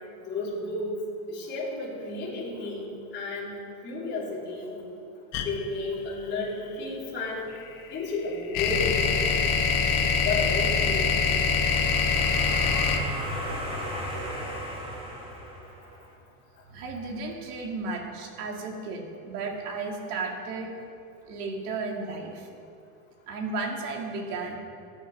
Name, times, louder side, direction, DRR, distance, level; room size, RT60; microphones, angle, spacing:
voice 1, 0.3-1.0 1.3-3.6 3.8-4.8 5.4-7.5 7.9-9.1 10.2-11.2, left 2 dB, 25° left, -7 dB, 3.5 m, -32 dB
sound 1, 5.3-5.5 7.6-14.6, left 5 dB, 45° left, 1.3 m, -24 dB
sound 2, 11.4-16.0, equal, 10° right, 1.7 m, -35 dB
voice 2, 16.7-20.7 21.3-22.5 23.3-24.6, right 3 dB, 90° right, 2 dB, 2.2 m, -34 dB
14.5 x 8.7 x 4.8 m, 2.6 s
supercardioid pair, 145°, 45 cm